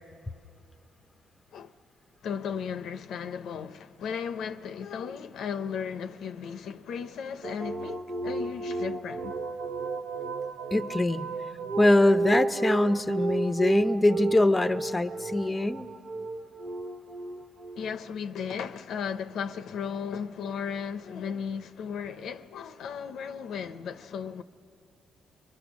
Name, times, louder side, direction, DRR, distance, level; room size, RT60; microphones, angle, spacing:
voice 1, 2.2-9.3 17.7-24.4, left 7 dB, 75° left, 0.6 m, -35 dB
sound 1, 7.4-18.1, right 3 dB, 70° right, 1.0 m, -32 dB
voice 2, 10.7-11.3 11.8-15.9, left 2 dB, 15° left, 0.6 m, -23 dB
30.0 x 22.5 x 6.2 m
cardioid pair, 90°, 0 cm